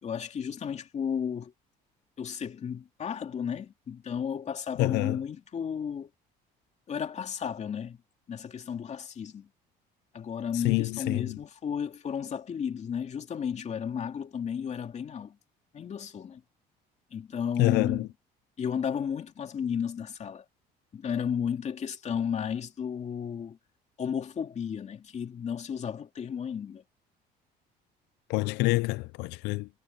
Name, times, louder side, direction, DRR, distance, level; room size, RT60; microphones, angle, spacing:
voice 1, 0.0-1.5 2.2-6.1 6.9-8.0 8.3-9.5 10.1-15.4 15.7-16.4 17.1-18.1 18.6-20.4 20.9-23.6 24.0-26.8, left 7 dB, 40° left, 2.5 m, -33 dB
voice 2, 4.8-5.2 10.5-11.4 17.6-18.1 28.3-29.7, left 22 dB, 90° left, 0.4 m, -27 dB
cardioid pair, 110°, 17 cm